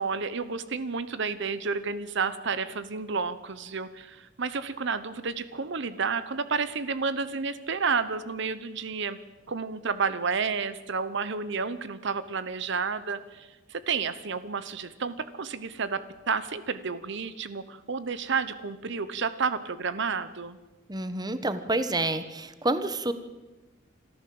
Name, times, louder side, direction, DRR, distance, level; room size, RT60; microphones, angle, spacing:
voice 1, 0.0-9.2 9.5-20.6, right 5 dB, 65° right, 14 dB, 0.9 m, -31 dB
voice 2, 20.9-23.1, right 2 dB, 20° right, 11 dB, 1.2 m, -28 dB
26.0 x 14.0 x 7.8 m, 1.2 s
head